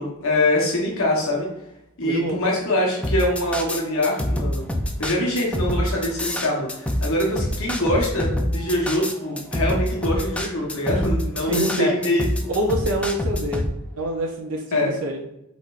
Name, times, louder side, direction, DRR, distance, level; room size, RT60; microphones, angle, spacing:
voice 1, 0.0-1.5 2.0-4.6 5.0-12.2 14.7-14.9, left 1 dB, 70° left, -2 dB, 1.1 m, -23 dB
voice 2, 2.0-2.4 11.4-11.9 12.5-13.7 14.0-15.2, right 1 dB, 85° right, -1 dB, 0.7 m, -26 dB
sound 1, 3.0-13.7, left 1 dB, 5° left, 0.4 m, -25 dB
4.4 x 4.2 x 2.4 m, 0.87 s
head